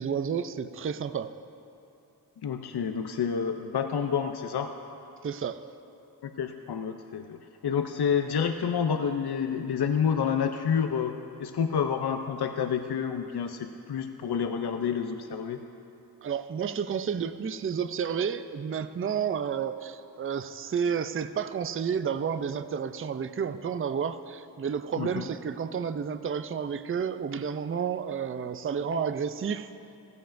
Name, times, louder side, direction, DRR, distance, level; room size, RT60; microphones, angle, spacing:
voice 1, 0.0-1.3 5.2-5.6 16.2-29.7, right 7 dB, 35° right, 11 dB, 0.4 m, -31 dB
voice 2, 2.4-4.7 6.2-15.6 25.0-25.3, left 7 dB, 75° left, 6 dB, 0.6 m, -29 dB
16.0 x 14.5 x 2.6 m, 2.7 s
wide cardioid pair, 75°, 39 cm